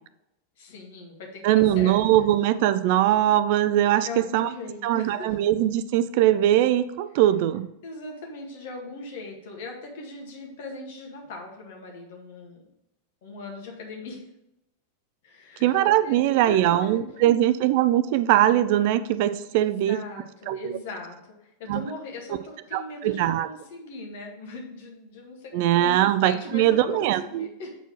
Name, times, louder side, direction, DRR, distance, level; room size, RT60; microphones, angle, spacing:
voice 1, 0.6-1.9 4.0-5.4 7.8-12.6 13.2-14.3 15.2-15.8 16.0-16.2 16.5-17.0 19.5-27.8, left 3 dB, 55° left, 1 dB, 1.8 m, -40 dB
voice 2, 1.4-4.5 4.8-7.7 15.6-20.0 20.5-20.8 21.7-21.8 22.7-23.5 25.5-27.5, right 12 dB, 50° right, 13 dB, 0.4 m, -21 dB
7.8 x 4.4 x 4.6 m, 0.87 s
figure-of-eight pair, 90°, 0 cm